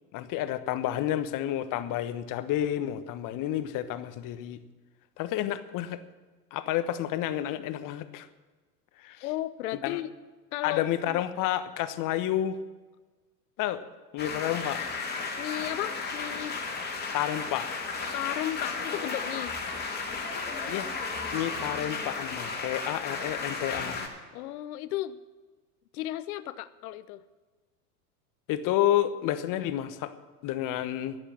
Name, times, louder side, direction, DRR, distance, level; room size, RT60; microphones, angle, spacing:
voice 1, 0.1-4.6 5.2-6.0 6.5-8.3 9.0-9.2 9.8-10.0 10.6-12.6 13.6-13.8 14.1-14.8 17.1-17.7 20.7-20.9 21.3-24.0 28.5-30.1 30.4-31.2, left 12 dB, 40° left, 12 dB, 1.1 m, -30 dB
voice 2, 9.2-10.1 10.5-11.2 15.4-16.6 18.1-19.5 24.3-25.2 25.9-27.2, left 14 dB, 65° left, 14 dB, 0.9 m, -34 dB
sound 1, 14.2-24.1, left 4 dB, 20° left, 3.2 m, -34 dB
11.5 x 11.0 x 7.5 m, 1.3 s
hypercardioid pair, 90°, 48 cm